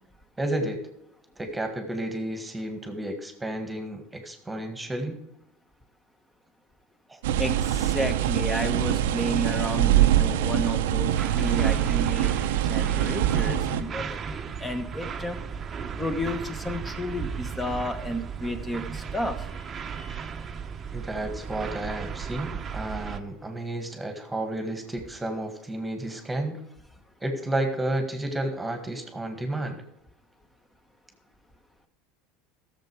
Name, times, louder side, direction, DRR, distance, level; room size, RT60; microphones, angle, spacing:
voice 1, 0.4-0.8 1.4-5.2 7.1-7.2 20.9-26.6 27.2-29.8, right 1 dB, 10° right, 6 dB, 1.8 m, -31 dB
sound 1, 7.2-13.8, right 12 dB, 80° right, 0.7 m, -24 dB
voice 2, 7.4-15.4 16.0-19.5 19.9-20.3, equal, 15° left, 8 dB, 1.4 m, -32 dB
sound 2, 11.2-23.2, right 6 dB, 30° right, 0.9 m, -35 dB
15.0 x 7.1 x 4.8 m, 0.84 s
supercardioid pair, 100°, 0 cm